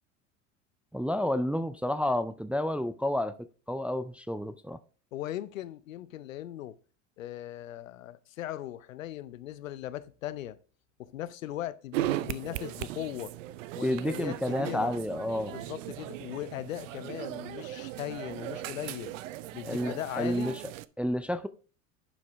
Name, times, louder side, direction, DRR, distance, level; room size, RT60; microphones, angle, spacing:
voice 1, 0.9-3.3 3.7-4.8 13.8-15.5 19.6-20.5 21.0-21.5, left 1 dB, 5° right, 0.3 m, -30 dB
voice 2, 5.1-6.8 7.2-10.6 11.0-13.3 13.7-14.9 15.5-19.1 19.5-20.5, left 13 dB, 90° left, 0.7 m, -38 dB
sound 1, 11.9-20.8, right 15 dB, 75° right, 0.6 m, -38 dB
11.0 x 4.8 x 3.4 m
hypercardioid pair, 85°, 38 cm